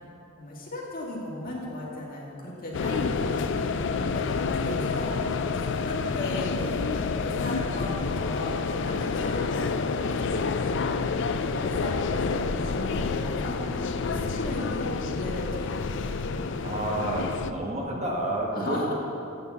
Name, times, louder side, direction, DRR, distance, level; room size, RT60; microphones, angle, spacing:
voice 1, 0.4-3.7 3.9-11.0 11.5-15.7 16.0-16.5 18.5-18.9, left 1 dB, 45° left, -4 dB, 2.2 m, -36 dB
sound 1, 2.7-17.5, left 4 dB, 60° left, 0.4 m, -28 dB
voice 2, 2.7-3.3 3.9-4.2 16.6-18.9, right 1 dB, 35° right, -1 dB, 1.4 m, -31 dB
8.5 x 7.1 x 7.1 m, 2.7 s
head